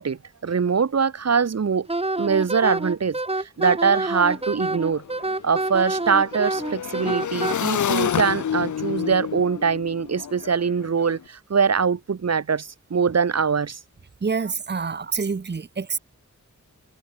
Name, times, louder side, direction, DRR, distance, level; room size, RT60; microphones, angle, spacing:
voice 1, 0.0-1.9 2.2-3.2 3.6-5.0 5.4-13.8, right 6 dB, 60° right, 1.5 m, -23 dB
Wind instrument woodwind instrument, 1.9-7.6, right 2 dB, 20° right, 1.8 m, -27 dB
Motorcycle / Engine, 3.6-3.7 4.0-11.2, left 8 dB, 80° left, 0.8 m, -30 dB
voice 2, 14.2-16.0, right 5 dB, 35° right, 1.1 m, -27 dB
wide cardioid pair, 85°, 29 cm